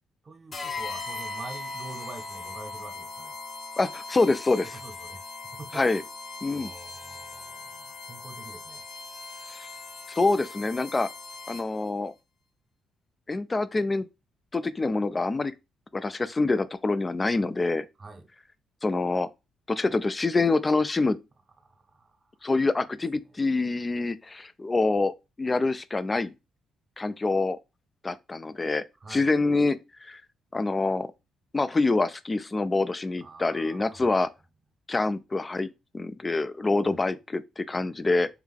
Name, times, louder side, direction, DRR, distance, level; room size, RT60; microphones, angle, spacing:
voice 1, 0.2-3.3 4.7-6.0 6.5-8.8 18.0-18.3 21.6-22.3 29.0-29.3 33.2-34.1 36.8-37.1 37.7-38.1, right 3 dB, 35° right, 0.6 m, -46 dB
sound 1, 0.5-11.9, left 3 dB, 40° left, 0.9 m, -39 dB
voice 2, 3.8-4.8 5.7-6.0 6.4-6.7 9.5-9.7 10.2-11.1 11.5-12.1 13.3-14.1 14.5-15.5 15.9-17.8 18.8-19.3 19.7-21.2 22.4-25.1 25.4-26.3 27.0-27.6 28.0-28.8 29.1-30.2 30.5-31.1 31.5-34.3 34.9-38.3, left 3 dB, 25° left, 0.3 m, -26 dB
3.5 x 2.3 x 3.5 m
cardioid pair, 90°, 0 cm